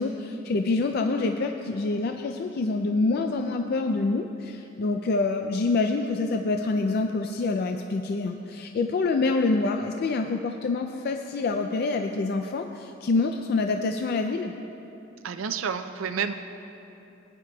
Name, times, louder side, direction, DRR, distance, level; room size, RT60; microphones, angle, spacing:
voice 1, 0.0-14.5, left 3 dB, 50° left, 5 dB, 0.4 m, -26 dB
voice 2, 15.2-16.3, right 6 dB, 90° right, 8 dB, 0.4 m, -29 dB
18.5 x 9.7 x 2.3 m, 2.9 s
head